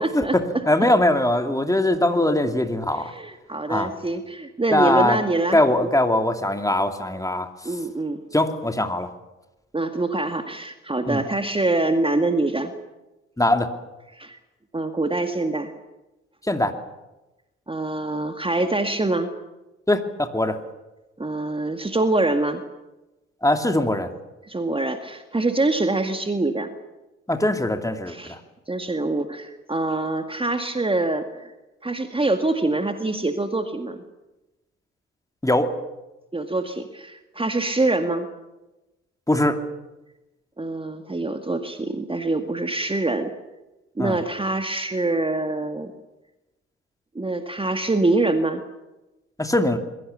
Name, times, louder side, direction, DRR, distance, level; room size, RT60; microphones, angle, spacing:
voice 1, 0.0-0.6 2.9-5.9 7.6-8.2 9.7-12.7 14.1-14.4 14.7-15.7 17.7-19.3 21.2-22.6 24.4-26.7 28.1-28.4 28.7-31.5 31.8-34.0 36.3-38.3 40.6-43.3 44.0-45.9 47.2-48.6, right 2 dB, 15° right, 7 dB, 2.0 m, -25 dB
voice 2, 0.7-3.1 3.7-3.9 4.7-5.2 5.5-7.5 8.3-9.1 11.1-11.2 13.4-13.7 16.5-16.7 19.9-20.6 23.4-24.1 27.3-28.4 35.4-35.7 39.3-39.6 44.0-44.2 49.4-49.8, left 1 dB, 10° left, 6 dB, 2.7 m, -21 dB
26.0 x 22.0 x 7.1 m, 1.0 s
figure-of-eight pair, 40°, 33 cm